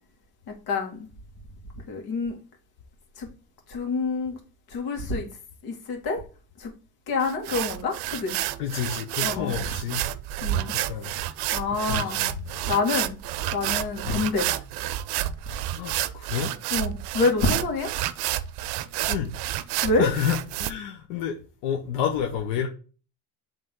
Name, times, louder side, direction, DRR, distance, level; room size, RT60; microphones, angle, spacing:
voice 1, 0.7-1.1 1.9-2.4 3.2-3.3 3.7-4.4 4.7-5.3 5.6-6.2 6.6-6.7 7.1-8.4 9.2-9.5 10.4-10.7 11.5-12.2 12.7-13.2 13.5-14.5 16.7-17.9 19.8-20.1, left 3 dB, 60° left, 2.1 m, -27 dB
sound 1, 7.2-20.7, right 14 dB, 65° right, 0.6 m, -30 dB
voice 2, 8.6-10.0 10.7-11.1 11.8-12.2 14.1-14.2 15.7-16.5 19.1-19.3 20.0-22.7, left 8 dB, 90° left, 1.0 m, -29 dB
8.0 x 3.6 x 3.7 m
cardioid pair, 140°, 41 cm